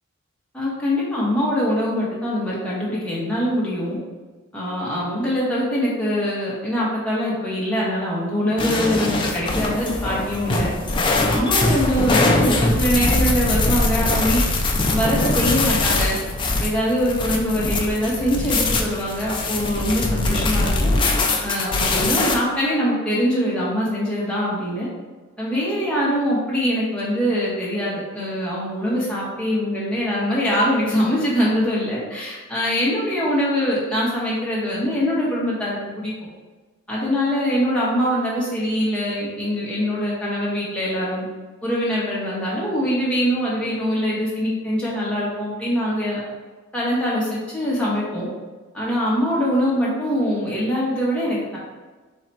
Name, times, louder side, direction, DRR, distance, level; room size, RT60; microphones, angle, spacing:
voice 1, 0.5-4.0 4.5-10.7 11.3-14.4 14.9-16.2 16.6-20.9 21.4-24.9 25.4-36.1 36.9-41.2 41.6-46.2 46.7-48.3 48.7-51.6, equal, 5° left, -7 dB, 1.2 m, -23 dB
sound 1, 8.6-22.4, left 2 dB, 20° left, 0.4 m, -22 dB
4.3 x 3.0 x 4.1 m, 1.3 s
head